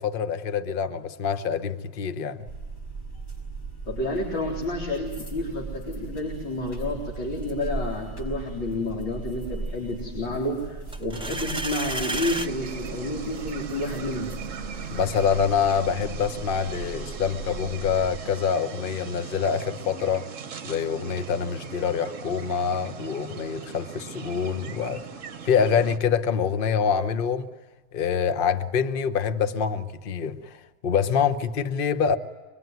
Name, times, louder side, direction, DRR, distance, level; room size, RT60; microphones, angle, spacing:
voice 1, 0.0-2.4 14.9-20.3 20.6-25.1 25.4-27.5 27.9-32.2, left 7 dB, 35° left, 0.9 m, -25 dB
sound 1, 2.4-18.2, right 3 dB, 55° left, 6.6 m, -38 dB
voice 2, 3.9-14.3, left 1 dB, 70° left, 4.7 m, -30 dB
sound 2, 10.9-12.5, right 2 dB, 5° right, 0.7 m, -31 dB
sound 3, 12.1-26.0, right 6 dB, 45° right, 1.3 m, -39 dB
25.5 x 22.0 x 9.4 m
omnidirectional pair, 2.2 m